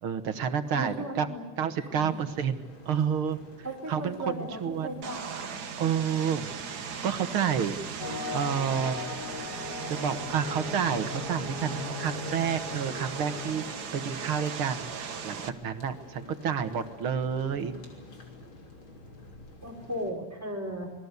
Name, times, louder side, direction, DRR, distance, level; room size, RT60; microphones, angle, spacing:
voice 1, 0.0-1.3 1.6-3.4 3.9-5.0 5.8-6.5 7.0-8.0 8.3-9.2 9.9-13.6 13.9-17.8, right 7 dB, 70° right, 9 dB, 2.3 m, -30 dB
voice 2, 0.7-1.4 1.8-2.2 3.6-5.5 19.6-20.9, equal, 5° right, 1 dB, 5.3 m, -36 dB
sound 1, 2.0-20.1, left 2 dB, 65° left, 4.2 m, -50 dB
Vehicle, 5.0-15.5, right 6 dB, 50° right, 1.8 m, -38 dB
sound 2, 8.0-13.5, left 5 dB, 35° left, 0.8 m, -39 dB
26.5 x 20.5 x 8.2 m, 1.1 s
omnidirectional pair, 2.4 m